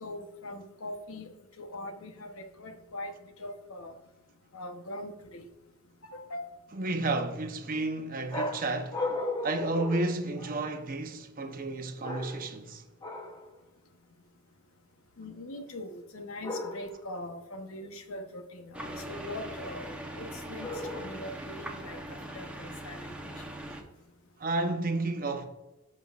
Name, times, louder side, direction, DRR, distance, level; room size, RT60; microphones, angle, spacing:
voice 1, 0.0-3.1 3.4-3.9 4.5-5.5 6.0-6.5 15.2-20.7 20.9-23.1, left 1 dB, 70° left, 0.9 m, -42 dB
voice 2, 6.7-9.0 9.4-12.8 24.4-25.5, right 2 dB, 40° right, 0.8 m, -31 dB
sound 1, 8.3-10.8 12.0-12.6 13.0-13.5 16.4-17.1 20.6-21.4, left 2 dB, 20° left, 0.9 m, -36 dB
sound 2, 18.7-23.8, right 1 dB, 5° right, 0.8 m, -41 dB
14.0 x 5.3 x 2.4 m
head